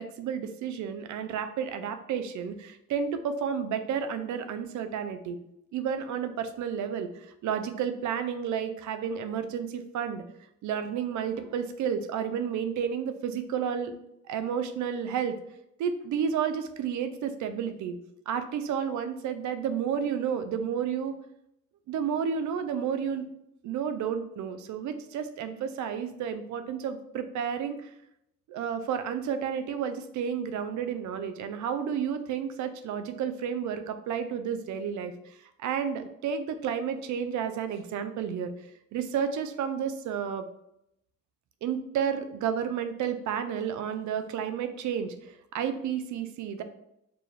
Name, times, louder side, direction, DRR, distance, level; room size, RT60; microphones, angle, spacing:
voice 1, 0.0-5.4 5.7-10.2 10.6-13.9 14.3-15.4 15.8-18.0 18.3-21.1 21.9-23.3 23.6-27.9 28.5-40.4 41.6-46.6, right 7 dB, 70° right, 9 dB, 0.5 m, -31 dB
4.8 x 2.4 x 3.2 m, 0.80 s
cardioid pair, 90°, 30 cm